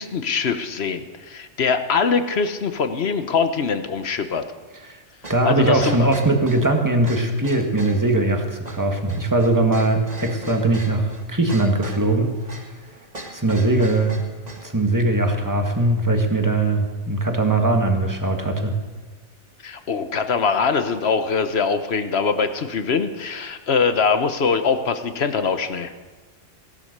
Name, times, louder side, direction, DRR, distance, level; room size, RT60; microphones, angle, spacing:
voice 1, 0.0-4.4 5.4-6.1 19.6-25.9, left 5 dB, 60° left, 9 dB, 1.3 m, -22 dB
sound 1, 5.2-14.7, right 2 dB, 35° right, 2.0 m, -40 dB
voice 2, 5.3-12.4 13.3-14.2 14.6-18.7, right 2 dB, 15° right, 3 dB, 1.7 m, -20 dB
17.5 x 12.0 x 6.7 m, 1.3 s
omnidirectional pair, 1.2 m